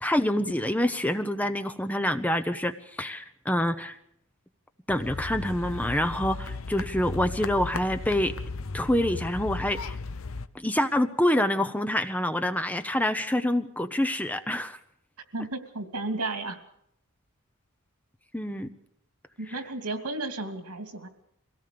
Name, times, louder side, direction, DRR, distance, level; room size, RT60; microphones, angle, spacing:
voice 1, 0.0-4.0 4.9-8.3 8.7-10.0 10.5-14.8 18.3-18.7, left 1 dB, 5° left, 9 dB, 0.8 m, -26 dB
sound 1, 4.9-10.5, left 3 dB, 65° left, 0.9 m, -36 dB
voice 2, 15.3-16.6 19.4-21.1, right 2 dB, 80° right, 6 dB, 2.8 m, -33 dB
24.0 x 17.5 x 6.9 m, 0.75 s
head